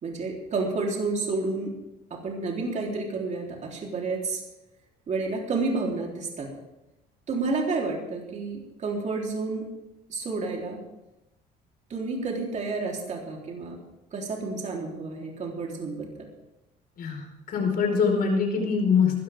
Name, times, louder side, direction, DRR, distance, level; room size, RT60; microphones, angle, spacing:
voice 1, 0.0-1.7 2.1-4.4 5.1-6.5 7.3-9.7 10.1-10.8 11.9-13.7 14.1-16.1, right 3 dB, 45° right, -1 dB, 3.9 m, -30 dB
voice 2, 17.0-19.2, left 5 dB, 60° left, 1 dB, 4.9 m, -24 dB
20.0 x 13.5 x 3.7 m, 0.93 s
cardioid pair, 110°, 17 cm